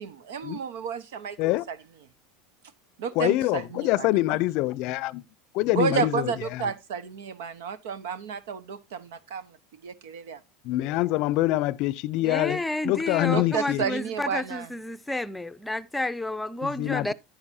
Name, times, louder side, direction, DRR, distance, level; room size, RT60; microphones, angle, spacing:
voice 1, 0.0-1.4 1.7-1.8 3.0-4.1 5.7-9.5 9.8-10.4 13.3-14.7, right 7 dB, 80° right, 1.1 m, -31 dB
voice 2, 1.4-1.7 3.1-5.2 5.5-6.7 10.6-13.8 16.6-17.1, left 17 dB, 60° left, 0.5 m, -25 dB
voice 3, 12.2-17.1, left 1 dB, 5° left, 0.6 m, -30 dB
10.5 x 9.8 x 2.7 m
supercardioid pair, 115°, 0 cm